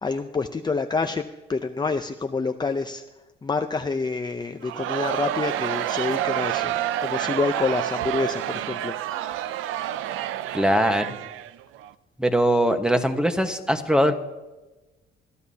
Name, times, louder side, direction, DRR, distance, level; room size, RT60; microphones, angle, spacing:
voice 1, 0.0-1.2 1.5-3.0 3.4-6.7 7.0-9.5, left 4 dB, 20° left, 6 dB, 0.6 m, -27 dB
Crowd, 4.6-11.9, right 12 dB, 90° right, 0.5 m, -28 dB
voice 2, 10.5-11.1 12.2-14.1, equal, 5° right, 7 dB, 1.3 m, -21 dB
21.0 x 13.0 x 2.8 m, 1.1 s
cardioid pair, 90°, 20 cm